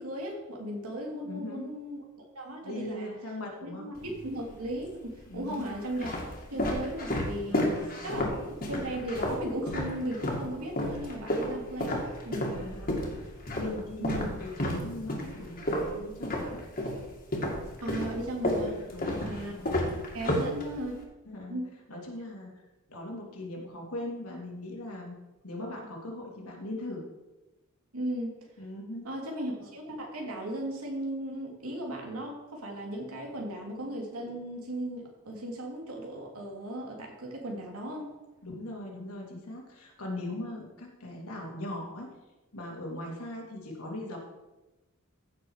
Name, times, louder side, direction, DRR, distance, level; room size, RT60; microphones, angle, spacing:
voice 1, 0.0-3.1 3.6-3.9 4.2-6.1 6.5-7.7 8.0-12.6 14.0-14.3 17.8-18.8 19.2-19.5 20.1-21.0 21.5-21.8 27.9-28.3 29.0-38.1, right 1 dB, 80° right, 0 dB, 3.0 m, -36 dB
voice 2, 1.2-1.7 2.6-3.9 5.3-5.7 7.5-8.2 12.5-16.6 18.9-19.9 21.3-21.6 21.9-22.5 22.9-25.1 25.4-27.0 28.6-29.1 38.4-42.1 42.5-44.2, left 1 dB, 80° left, -1 dB, 3.0 m, -40 dB
sound 1, 4.0-4.7 5.4-10.5 10.8-17.0 17.3-21.0, left 1 dB, 40° left, 2.4 m, -31 dB
15.0 x 6.7 x 4.9 m, 1.1 s
head